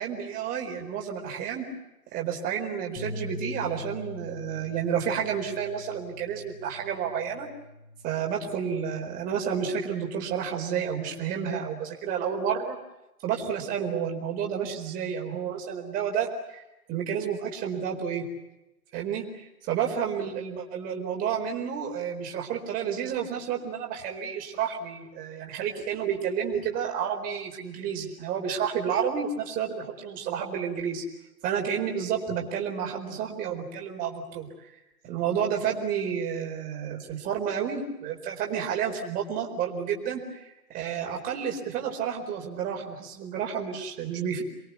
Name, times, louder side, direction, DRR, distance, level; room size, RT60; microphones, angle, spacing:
voice 1, 0.0-1.7 2.1-7.5 8.0-12.8 13.2-16.6 16.9-18.3 18.9-31.0 31.4-34.7 35.1-44.4, right 7 dB, 20° right, 1 dB, 4.4 m, -30 dB
Bass guitar, 3.0-9.2, left 1 dB, 30° left, 7.4 m, -42 dB
28.0 x 22.5 x 8.3 m, 0.94 s
hypercardioid pair, 155°, 45 cm